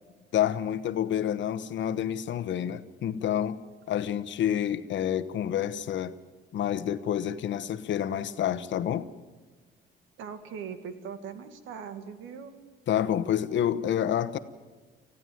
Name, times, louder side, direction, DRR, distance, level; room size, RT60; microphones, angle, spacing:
voice 1, 0.3-3.6 3.9-6.1 6.5-9.1 12.9-14.4, left 10 dB, 70° left, 1.1 m, -28 dB
voice 2, 10.2-12.6, right 7 dB, 90° right, 2.0 m, -40 dB
20.0 x 14.5 x 9.2 m
cardioid pair, 90°, 20 cm